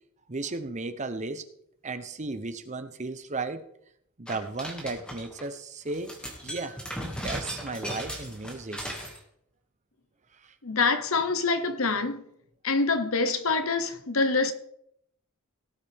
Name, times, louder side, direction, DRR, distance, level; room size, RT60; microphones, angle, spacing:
voice 1, 0.3-1.4 1.8-3.6 4.2-6.1 6.4-6.8 7.2-8.8 10.4-10.5, right 3 dB, 35° right, 0.8 m, -35 dB
sound 1, 4.3-5.5 5.9-9.2, equal, 5° left, 2.2 m, -37 dB
voice 2, 10.6-12.2 12.6-14.5, left 4 dB, 70° left, 1.1 m, -25 dB
18.0 x 8.2 x 3.6 m
head